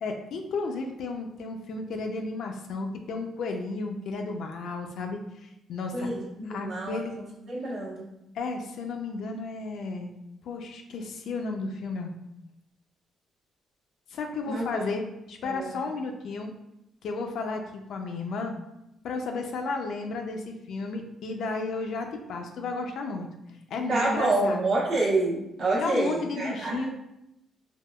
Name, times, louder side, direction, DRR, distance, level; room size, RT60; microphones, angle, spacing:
voice 1, 0.0-6.1 6.5-7.2 8.3-10.1 10.4-12.1 14.1-16.5 17.0-18.5 19.0-23.3 23.7-24.7 25.8-26.9, left 3 dB, 70° left, 3 dB, 0.4 m, -33 dB
voice 2, 5.9-8.1 14.5-14.8 15.4-15.9 23.9-26.8, right 2 dB, 70° right, -7 dB, 0.9 m, -28 dB
3.4 x 2.2 x 2.2 m, 0.86 s
cardioid pair, 90°, 0 cm